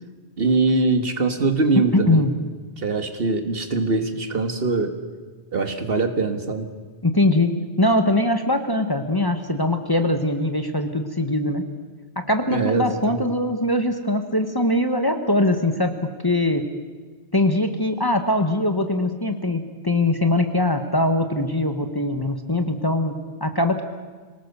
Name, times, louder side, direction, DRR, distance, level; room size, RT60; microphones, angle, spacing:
voice 1, 0.4-2.3 2.8-4.9 5.5-6.7 12.5-13.3, right 3 dB, 60° right, 7 dB, 1.7 m, -22 dB
voice 2, 1.9-2.4 7.0-11.7 12.2-16.6 17.3-23.8, left 1 dB, 20° left, 6 dB, 1.3 m, -22 dB
25.5 x 18.5 x 6.8 m, 1.4 s
omnidirectional pair, 1.1 m